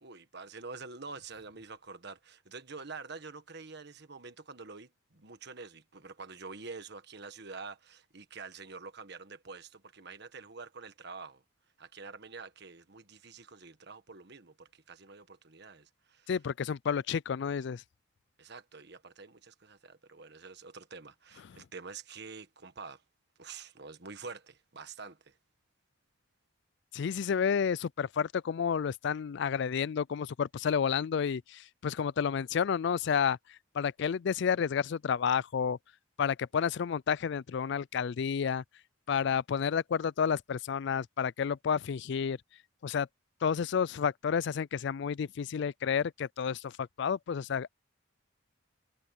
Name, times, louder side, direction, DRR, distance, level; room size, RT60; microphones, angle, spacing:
voice 1, 0.0-11.4 11.8-16.3 18.4-23.0 23.4-25.3, right 4 dB, 55° right, 1.5 m, -47 dB
voice 2, 16.3-17.8 26.9-33.4 33.7-35.8 36.2-38.6 39.1-42.4 42.8-43.1 43.4-47.7, left 7 dB, 60° left, 0.3 m, -30 dB
head